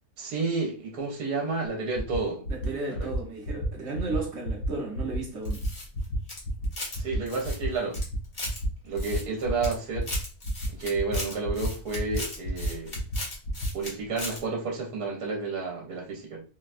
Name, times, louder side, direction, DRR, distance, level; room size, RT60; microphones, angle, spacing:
voice 1, 0.2-2.5 2.9-3.1 7.0-8.0 8.8-10.1 10.7-12.9 13.7-16.4, right 4 dB, 75° right, 1.3 m, -31 dB
sound 1, 1.9-2.2 2.4-2.7 2.9-3.2 3.4-3.7 3.9-4.2 4.4-4.7 4.9-5.2 5.4-5.7 5.9-6.2 6.4-6.7 6.9-7.2 7.4-7.7 7.9-8.2 8.4-8.7 8.9-9.2 9.4-9.7 9.9-10.2 10.4-10.7 10.9-11.2 11.4-11.7 11.9-12.2 12.4-12.7 12.9-13.2 13.4-13.7, equal, 60° left, 1.1 m, -31 dB
voice 2, 2.5-5.6, right 3 dB, 55° right, 1.0 m, -34 dB
sound 2, 5.4-7.0 7.3-8.6 9.0-9.7 10.0-13.9 14.2-14.4, left 1 dB, 35° left, 1.1 m, -37 dB
4.1 x 2.2 x 2.4 m
omnidirectional pair, 1.7 m